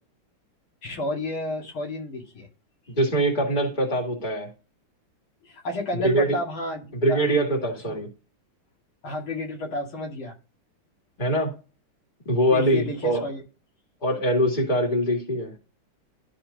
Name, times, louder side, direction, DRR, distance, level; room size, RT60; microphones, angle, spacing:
voice 1, 0.8-2.5 5.4-7.3 7.9-8.0 9.0-10.3 12.5-13.4, left 1 dB, 90° left, 3.2 m, -31 dB
voice 2, 2.9-4.5 5.9-6.3 7.0-8.1 11.2-11.5 12.3-13.2 14.0-15.5, right 1 dB, 25° left, 2.2 m, -23 dB
12.5 x 4.3 x 4.0 m
omnidirectional pair, 2.2 m